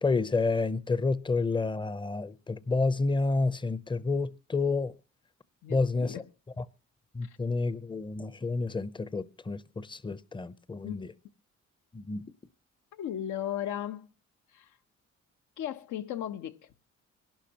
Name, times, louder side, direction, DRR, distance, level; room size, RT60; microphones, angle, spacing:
voice 1, 0.0-4.9 5.7-6.2 6.6-6.7 7.1-11.1 11.9-12.3, left 3 dB, 15° left, 0.6 m, -29 dB
voice 2, 5.6-6.3 7.2-7.4 10.8-11.0 12.9-14.1 14.5-14.8 15.6-16.7, left 11 dB, 80° left, 1.0 m, -36 dB
23.0 x 12.0 x 2.9 m
cardioid pair, 90°, 30 cm